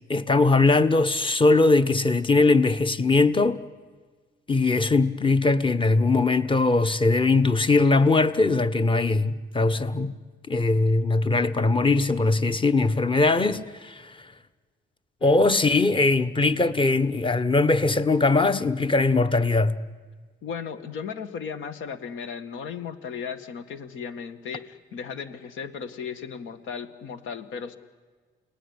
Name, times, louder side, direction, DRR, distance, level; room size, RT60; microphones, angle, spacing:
voice 1, 0.1-3.6 4.5-10.1 10.5-14.2 15.2-19.8, left 3 dB, 25° left, 1.4 m, -21 dB
voice 2, 15.2-15.5 20.4-27.8, left 6 dB, 85° left, 2.0 m, -36 dB
29.5 x 19.5 x 9.9 m
cardioid pair, 90°, 20 cm